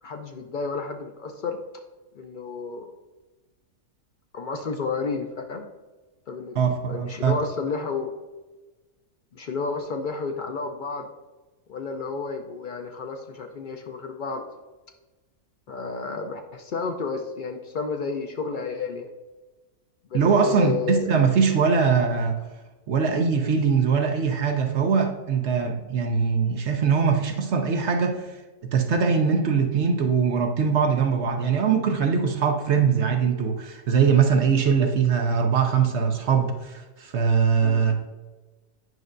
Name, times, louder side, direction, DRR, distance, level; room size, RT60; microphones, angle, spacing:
voice 1, 0.0-1.6 2.1-2.9 4.3-5.7 6.3-6.6 6.9-8.1 9.3-11.1 11.7-14.4 15.7-19.1 20.1-21.1 37.6-37.9, left 4 dB, 70° left, 4 dB, 0.4 m, -31 dB
voice 2, 6.6-7.3 20.1-22.4 22.9-28.3 28.7-38.0, right 6 dB, 60° right, 4 dB, 0.9 m, -22 dB
9.3 x 5.3 x 2.6 m, 1.2 s
omnidirectional pair, 1.5 m